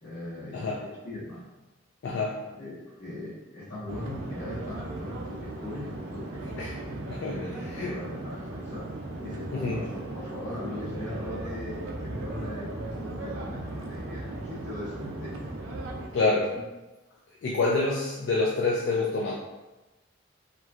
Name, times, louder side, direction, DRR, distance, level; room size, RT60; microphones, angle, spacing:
voice 1, 0.0-1.4 2.5-6.4 6.8-8.8 9.2-15.3 16.2-16.6, left 1 dB, 45° left, -18 dB, 1.3 m, -39 dB
voice 2, 2.0-2.4 6.4-6.8 7.1-8.0 9.5-9.8 16.1-16.5 17.4-19.3, left 3 dB, 60° left, -3 dB, 0.3 m, -27 dB
sound 1, 3.9-16.1, right 2 dB, 85° right, 0.4 m, -37 dB
3.0 x 2.5 x 2.4 m, 1.1 s
head